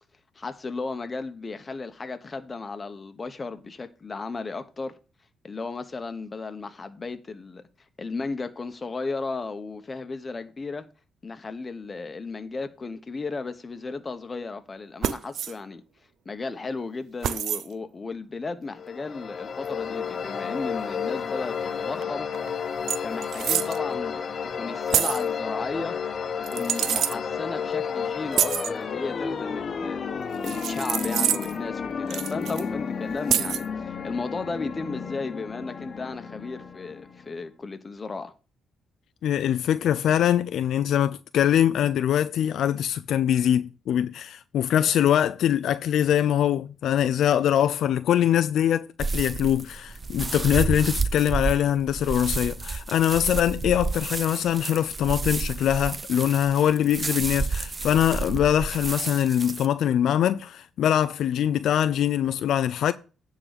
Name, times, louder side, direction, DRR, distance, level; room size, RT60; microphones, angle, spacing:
voice 1, 0.3-4.9 5.4-7.6 8.0-10.9 11.2-15.8 16.2-22.3 23.0-26.0 26.4-38.3, left 3 dB, 30° left, 1.1 m, -35 dB
sound 1, 15.0-15.5 17.2-17.7 19.7-19.8 22.0-22.1 22.3-22.5 22.9-23.8 24.9-25.3 26.4-27.2 28.3-28.7 30.4-31.6 32.1-32.6 33.3-33.7, right 9 dB, 70° right, 0.5 m, -26 dB
sound 2, 18.7-37.4, left 6 dB, 45° left, 1.1 m, -32 dB
voice 2, 39.2-62.9, left 10 dB, 75° left, 0.4 m, -23 dB
sound 3, 49.0-59.7, right 4 dB, 30° right, 0.7 m, -30 dB
9.8 x 3.9 x 6.6 m
cardioid pair, 90°, 0 cm